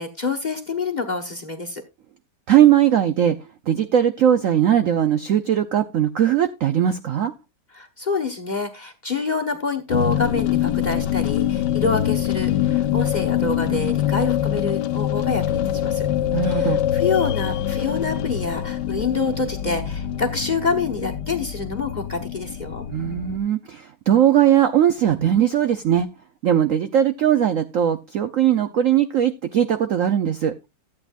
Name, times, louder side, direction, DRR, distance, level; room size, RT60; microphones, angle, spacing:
voice 1, 0.0-1.8 7.7-16.1 16.4-22.8, left 4 dB, 30° left, 1 dB, 0.9 m, -27 dB
voice 2, 2.5-3.4 3.7-7.3 16.3-16.8 22.9-26.1 26.4-30.5, right 10 dB, 75° right, 10 dB, 0.7 m, -19 dB
sound 1, 9.9-23.4, left 11 dB, 70° left, 1.2 m, -24 dB
14.0 x 8.6 x 2.4 m, 0.24 s
omnidirectional pair, 2.1 m